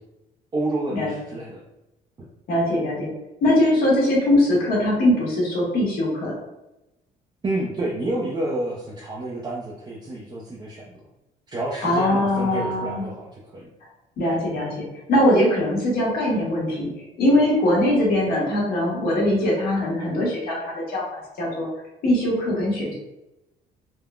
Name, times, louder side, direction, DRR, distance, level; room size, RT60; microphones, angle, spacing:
voice 1, 0.5-1.6 7.4-11.0 11.5-13.7, right 1 dB, 25° right, -4 dB, 0.5 m, -29 dB
voice 2, 2.5-3.1 3.4-6.3 11.8-13.1 14.2-16.9 17.2-21.7 22.0-22.9, left 1 dB, 60° left, -4 dB, 1.3 m, -21 dB
3.5 x 2.0 x 2.3 m, 0.93 s
cardioid pair, 110°, 17 cm